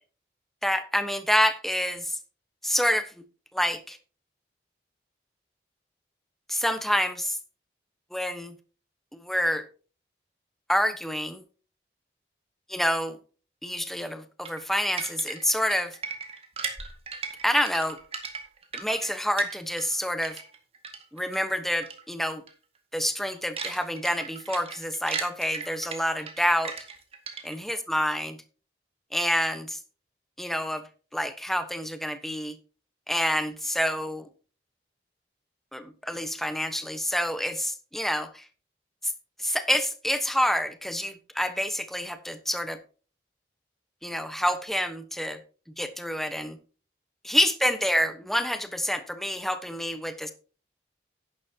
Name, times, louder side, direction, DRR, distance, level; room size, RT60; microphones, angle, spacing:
voice 1, 0.6-2.2 2.6-3.1 3.5-4.0 6.5-7.4 8.1-8.6 9.1-9.7 10.7-11.4 12.7-13.2 13.6-16.0 17.4-18.0 18.7-20.4 21.1-22.4 22.9-26.7 27.4-28.4 29.1-29.8 30.4-30.8 31.1-32.5 33.1-34.3 35.7-38.4 39.0-39.1 39.4-42.8 44.0-45.4 45.8-46.6 47.2-50.3, equal, ahead, 9 dB, 1.1 m, -27 dB
sound 1, 14.4-20.0 20.2-21.4 21.8-22.0 22.3-22.5 22.9-27.7, right 5 dB, 35° right, 2.1 m, -37 dB
11.5 x 10.5 x 2.9 m, 0.36 s
head